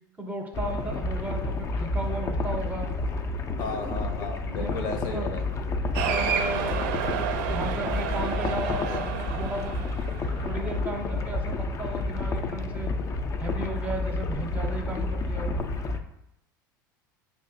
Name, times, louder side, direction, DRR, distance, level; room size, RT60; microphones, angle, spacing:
voice 1, 0.2-2.9 4.5-5.3 6.0-9.8 10.2-12.9 13.4-15.5, right 1 dB, 15° right, 2 dB, 0.7 m, -35 dB
sound 1, 0.5-16.0, left 2 dB, 25° left, 0.3 m, -30 dB
voice 2, 3.6-5.5, left 3 dB, 60° left, 4 dB, 0.7 m, -34 dB
Cheering, 5.9-10.7, right 7 dB, 60° right, 0.4 m, -31 dB
5.2 x 2.5 x 2.6 m, 0.82 s
hypercardioid pair, 85°, 11 cm